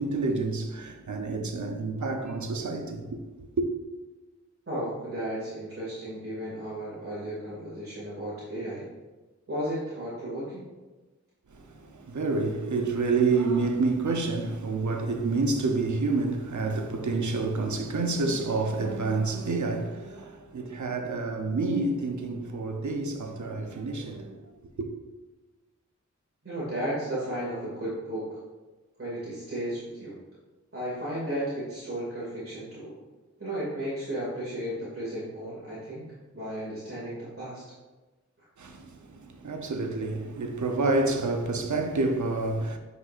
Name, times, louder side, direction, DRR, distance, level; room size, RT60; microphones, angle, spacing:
voice 1, 0.0-3.7 11.5-24.5 24.8-24.9 38.6-42.8, right 3 dB, 80° right, 0.8 m, -28 dB
voice 2, 4.7-8.8 9.5-10.6 26.4-28.4 29.0-30.1 30.7-32.9 33.4-36.0 36.3-37.6, right 1 dB, 50° right, 2.3 m, -34 dB
9.9 x 5.4 x 2.5 m
wide cardioid pair, 85°, 29 cm